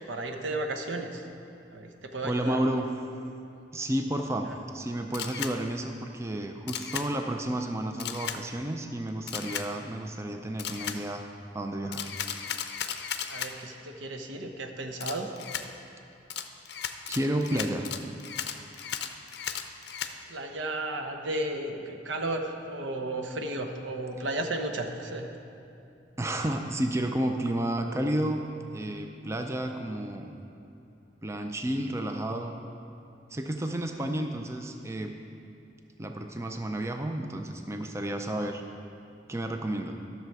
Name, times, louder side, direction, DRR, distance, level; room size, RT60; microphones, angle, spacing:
voice 1, 0.1-1.2 1.7-2.6 4.4-4.5 13.3-15.3 20.3-25.3 34.0-34.1, right 2 dB, 85° right, 4 dB, 0.9 m, -34 dB
voice 2, 2.2-2.9 3.7-11.3 11.5-12.1 17.1-18.0 26.2-30.4 31.2-32.5 33.3-35.1 36.0-38.6 39.3-40.0, right 1 dB, 15° right, 4 dB, 0.4 m, -31 dB
Camera, 5.1-5.5 6.7-7.1 8.0-8.4 9.3-9.7 10.6-11.0 11.9-13.5 15.0-15.7 16.3-20.1, left 9 dB, 60° left, 0.5 m, -35 dB
13.0 x 6.8 x 4.7 m, 2.7 s
head